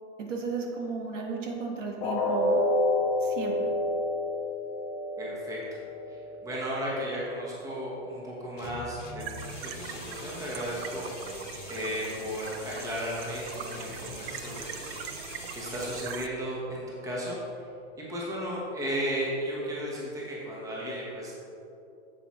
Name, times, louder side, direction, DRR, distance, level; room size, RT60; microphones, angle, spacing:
voice 1, 0.2-2.6 3.2-3.7, right 4 dB, 85° right, 1 dB, 1.5 m, -34 dB
sound 1, 2.0-8.0 8.4-8.6 9.0-9.1, left 1 dB, 15° left, 0.5 m, -30 dB
voice 2, 5.2-5.6 6.1-11.1 11.6-17.7 18.0-21.3, equal, 10° right, -5 dB, 1.2 m, -35 dB
sound 2, 8.6-16.0, left 4 dB, 90° left, 1.2 m, -44 dB
sound 3, 9.2-16.3, right 8 dB, 55° right, 0.5 m, -42 dB
8.0 x 7.1 x 3.1 m, 2.7 s
supercardioid pair, 155°, 36 cm